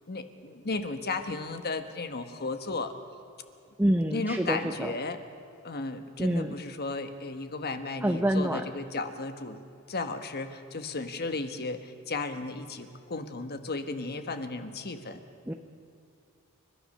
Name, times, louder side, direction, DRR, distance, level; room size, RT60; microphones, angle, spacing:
voice 1, 0.1-2.9 4.1-5.2 5.6-9.6 9.9-15.2, left 3 dB, 50° left, 8 dB, 1.4 m, -34 dB
voice 2, 3.8-4.9 6.2-6.5 8.0-8.6 15.5-15.6, right 1 dB, 10° right, 5 dB, 0.7 m, -26 dB
29.5 x 13.0 x 6.6 m, 2.6 s
head